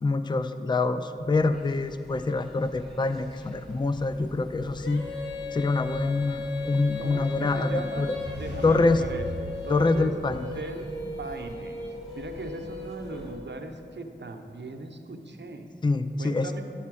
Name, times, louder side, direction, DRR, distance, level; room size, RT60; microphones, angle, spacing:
voice 1, 0.0-5.0 5.5-8.2 8.6-9.0 9.7-10.5 15.8-16.6, left 3 dB, 25° left, 11 dB, 0.4 m, -25 dB
sound 1, 1.2-13.4, right 1 dB, ahead, 1.6 m, -47 dB
Female singing, 4.8-13.6, left 4 dB, 90° left, 1.0 m, -37 dB
voice 2, 7.0-8.1 8.3-10.1 10.5-11.8 12.1-15.7 16.2-16.6, right 3 dB, 70° right, 5 dB, 0.8 m, -39 dB
sound 2, 8.0-10.9, equal, 65° left, 1.2 m, -39 dB
11.5 x 4.3 x 6.2 m, 2.5 s
cardioid pair, 40°, 19 cm